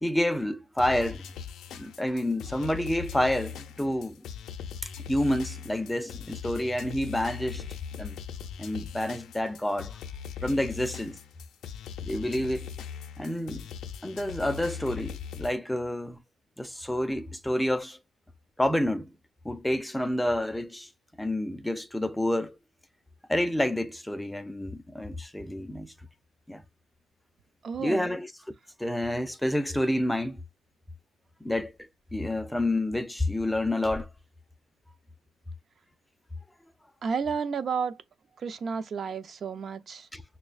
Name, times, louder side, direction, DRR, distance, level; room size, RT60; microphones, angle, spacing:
voice 1, 0.0-1.2 1.7-4.2 4.8-7.6 8.0-8.2 8.6-10.0 10.4-11.2 12.0-12.7 13.2-13.7 14.0-16.2 16.6-18.0 18.6-19.1 19.4-20.9 21.2-22.6 23.3-25.9 26.5-26.6 27.8-28.3 28.8-30.4 31.4-34.1 40.1-40.2, left 1 dB, 5° left, 0.4 m, -29 dB
sound 1, 0.8-15.6, left 7 dB, 80° left, 0.4 m, -40 dB
voice 2, 27.6-28.1 37.0-38.0 38.4-40.1, right 6 dB, 50° right, 0.5 m, -31 dB
6.1 x 2.1 x 2.4 m
cardioid pair, 90°, 0 cm